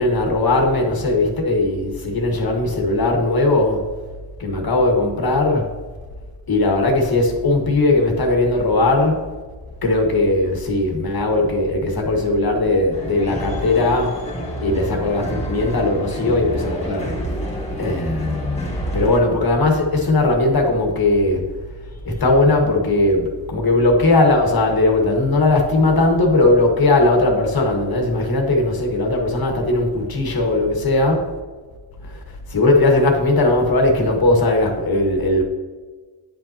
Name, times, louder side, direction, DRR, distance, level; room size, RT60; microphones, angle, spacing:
voice 1, 0.0-3.8 4.4-5.7 6.5-9.3 9.8-14.2 14.6-17.1 17.8-18.7 18.9-21.4 22.0-31.3 32.0-32.2 32.5-35.4, left 2 dB, 45° left, 2 dB, 1.7 m, -18 dB
sound 1, 12.9-19.2, right 1 dB, 15° left, 2.1 m, -28 dB
9.5 x 5.6 x 2.9 m, 1.4 s
cardioid pair, 65°, 48 cm